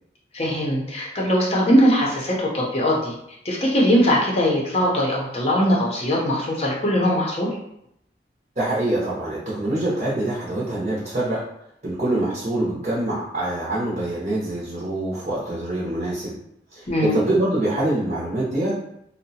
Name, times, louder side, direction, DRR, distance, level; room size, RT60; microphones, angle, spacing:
voice 1, 0.3-3.1 3.4-7.5 16.9-17.2, equal, 35° left, -3 dB, 0.6 m, -20 dB
voice 2, 8.6-11.4 11.8-16.3 16.7-18.8, right 1 dB, 40° right, -7 dB, 0.6 m, -25 dB
2.7 x 2.0 x 2.7 m, 0.76 s
head